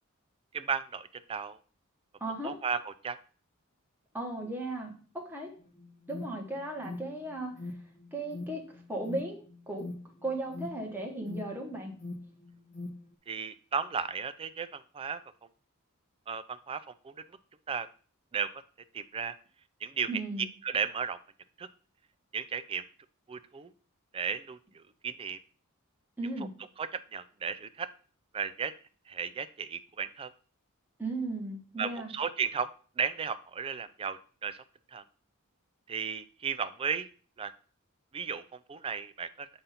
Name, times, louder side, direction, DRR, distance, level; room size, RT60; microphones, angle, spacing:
voice 1, 0.5-1.6 2.4-3.2 13.3-15.2 16.3-17.1 17.7-17.9 18.3-18.5 18.9-19.3 19.8-20.1 20.4-21.2 21.6-21.7 22.3-22.8 23.3-23.7 24.1-25.4 26.8-27.9 28.3-28.7 29.1-30.3 31.8-32.7 33.0-34.6 34.9-35.0 35.9-37.1 37.4-37.5 38.1-38.4 38.7-39.5, right 6 dB, 25° right, 12 dB, 0.3 m, -34 dB
voice 2, 2.2-2.5 4.1-5.5 6.1-7.5 8.1-8.6 8.9-9.8 10.2-11.9 20.1-20.5 26.2-26.5 31.0-32.1, right 2 dB, 10° right, 1 dB, 1.2 m, -36 dB
Alarm, 5.6-13.1, left 2 dB, 35° left, 0.7 m, -44 dB
6.9 x 2.6 x 5.6 m, 0.41 s
head